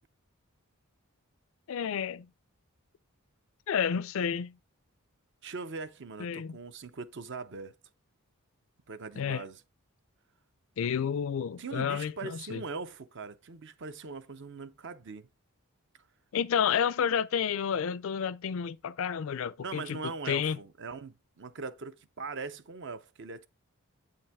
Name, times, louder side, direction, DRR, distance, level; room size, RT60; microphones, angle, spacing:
voice 1, 1.7-2.3 3.7-4.6 6.2-6.5 9.2-9.4 10.8-12.6 16.3-20.6, left 7 dB, 65° left, 0.4 m, -30 dB
voice 2, 5.4-7.7 8.9-9.6 11.6-15.3 19.6-23.5, right 4 dB, 55° right, 0.6 m, -41 dB
8.0 x 5.4 x 3.5 m
head